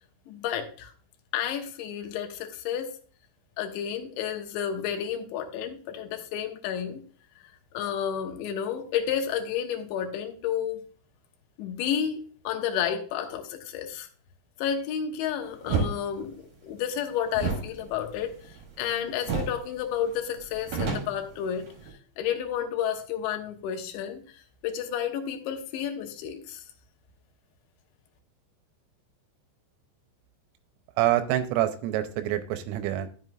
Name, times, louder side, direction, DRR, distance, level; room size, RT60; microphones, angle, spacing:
voice 1, 0.3-0.9 1.3-2.9 3.6-7.0 7.7-10.8 11.6-14.1 14.6-21.6 22.2-26.6, left 9 dB, 75° left, 4 dB, 3.1 m, -31 dB
sound 1, 15.6-15.9 17.3-18.9 19.2-19.6 19.9-20.0 20.4-21.9, right 5 dB, 45° right, 2.8 m, -30 dB
voice 2, 31.0-33.1, right 13 dB, 85° right, 9 dB, 3.3 m, -26 dB
12.5 x 7.7 x 2.5 m, 0.42 s
omnidirectional pair, 5.9 m